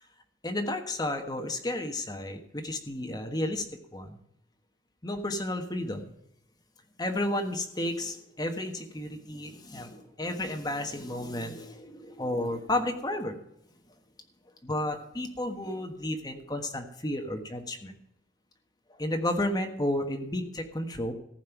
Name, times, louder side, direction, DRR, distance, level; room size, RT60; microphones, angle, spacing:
voice 1, 0.4-4.2 5.0-6.0 7.0-13.4 14.6-17.9 19.0-21.1, left 1 dB, 20° left, 4 dB, 1.4 m, -32 dB
14.5 x 5.4 x 9.1 m, 0.76 s
head